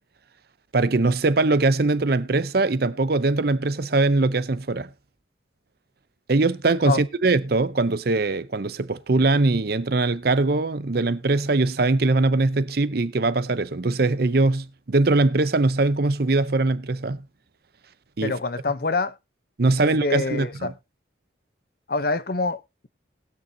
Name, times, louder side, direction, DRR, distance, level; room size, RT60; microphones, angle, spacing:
voice 1, 0.7-4.9 6.3-17.2 18.2-18.3 19.6-20.7, right 3 dB, 55° right, 0.6 m, -21 dB
voice 2, 18.2-19.2 19.8-20.7 21.9-22.9, left 3 dB, 50° left, 0.8 m, -26 dB
20.0 x 6.7 x 2.8 m
head